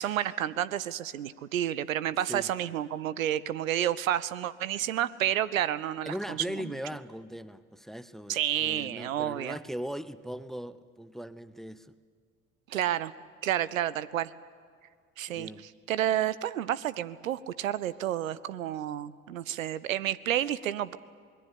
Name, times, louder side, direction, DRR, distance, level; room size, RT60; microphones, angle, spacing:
voice 1, 0.0-6.4 8.3-9.6 12.7-13.1 13.4-14.3 15.2-15.5 15.9-21.0, right 11 dB, 75° right, 17 dB, 0.7 m, -30 dB
voice 2, 6.1-11.9 15.3-15.6, equal, ahead, 16 dB, 0.8 m, -39 dB
25.5 x 21.0 x 8.6 m, 2.1 s
figure-of-eight pair, 50°, 40 cm